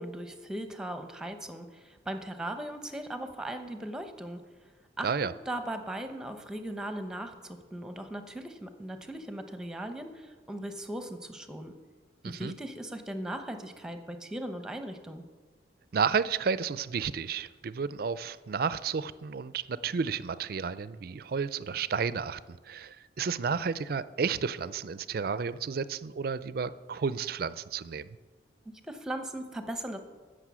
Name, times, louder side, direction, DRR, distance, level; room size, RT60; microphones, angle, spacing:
voice 1, 0.0-4.4 5.0-11.7 12.2-15.2 28.9-30.0, right 1 dB, 5° right, 7 dB, 0.8 m, -38 dB
voice 2, 12.2-12.6 15.9-28.1, right 6 dB, 55° right, 16 dB, 0.4 m, -32 dB
15.5 x 6.4 x 6.2 m, 1.4 s
head